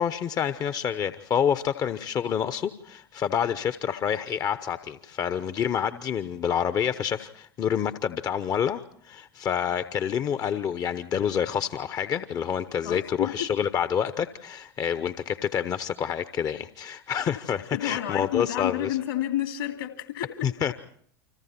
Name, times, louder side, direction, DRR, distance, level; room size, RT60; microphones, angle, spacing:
voice 1, 0.0-18.9 20.4-20.7, left 8 dB, 30° left, 0.9 m, -28 dB
voice 2, 12.8-13.5 17.7-20.5, left 13 dB, 60° left, 2.7 m, -30 dB
30.0 x 26.0 x 4.4 m
figure-of-eight pair, 80°, 12 cm